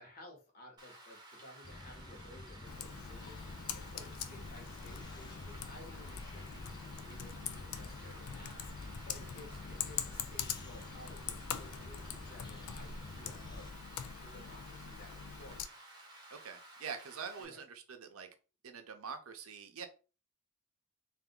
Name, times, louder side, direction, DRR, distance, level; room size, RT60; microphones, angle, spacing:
voice 1, 0.0-6.7 7.0-8.6 9.1-13.7 14.2-15.7 17.4-17.6, left 1 dB, 45° left, 1 dB, 1.2 m, -55 dB
Rain, 0.8-17.4, right 1 dB, 20° right, 1.0 m, -55 dB
sound 1, 1.6-13.7, left 2 dB, 20° left, 0.4 m, -51 dB
Computer keyboard, 2.6-15.7, left 8 dB, 90° left, 0.4 m, -44 dB
voice 2, 16.3-18.3 18.6-19.9, right 6 dB, 85° right, 6 dB, 0.7 m, -45 dB
3.4 x 2.5 x 3.7 m, 0.34 s
head